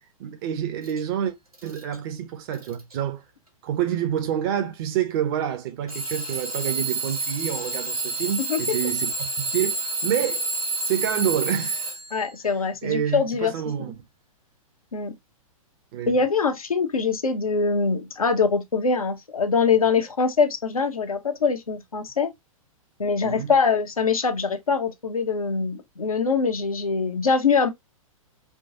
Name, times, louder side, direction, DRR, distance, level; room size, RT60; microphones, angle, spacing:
voice 1, 0.2-1.3 1.6-3.2 3.6-10.5 10.8-11.9 12.8-14.0 15.9-16.1 23.2-23.5, right 10 dB, 40° right, 0.8 m, -28 dB
Alarm / Clock, 0.8-1.0 1.5-2.0 2.5-2.9 3.8-3.9 5.9-12.3, right 3 dB, 90° right, 1.8 m, -29 dB
voice 2, 12.1-13.5 13.8-13.9 14.9-15.1 16.1-22.3 23.0-27.7, left 5 dB, 75° left, 0.9 m, -23 dB
4.6 x 2.3 x 2.7 m
figure-of-eight pair, 110°, 18 cm